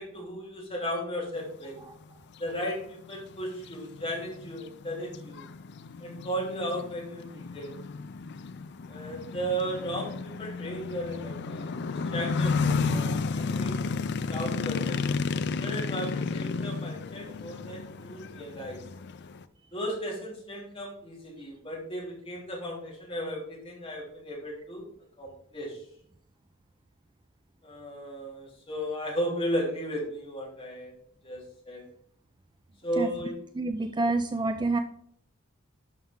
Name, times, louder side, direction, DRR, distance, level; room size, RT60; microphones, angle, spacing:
voice 1, 0.0-1.8 2.4-5.5 6.0-7.7 8.9-15.0 15.6-18.8 19.7-24.9 25.2-25.8 27.6-30.9 31.2-31.4 31.6-31.8 32.8-33.3, equal, 25° left, -4 dB, 3.3 m, -35 dB
sound 1, 2.4-2.5 3.0-19.4, left 4 dB, 55° left, 0.5 m, -32 dB
voice 2, 33.5-34.8, right 2 dB, 20° right, 8 dB, 0.4 m, -27 dB
11.5 x 5.9 x 3.7 m, 0.64 s
head